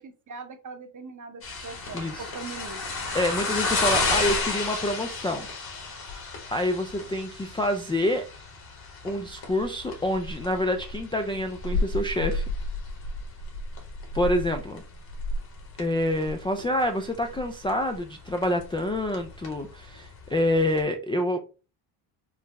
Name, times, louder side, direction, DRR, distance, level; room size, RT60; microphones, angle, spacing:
voice 1, 0.0-2.9, right 4 dB, 40° right, 7 dB, 0.9 m, -41 dB
sound 1, 1.4-20.8, left 3 dB, 50° left, 1.8 m, -32 dB
voice 2, 3.1-5.5 6.5-8.2 9.0-12.4 14.1-14.8 15.8-21.4, left 1 dB, 10° left, 3 dB, 0.3 m, -27 dB
4.7 x 2.0 x 3.4 m, 0.33 s
supercardioid pair, 70°, 47 cm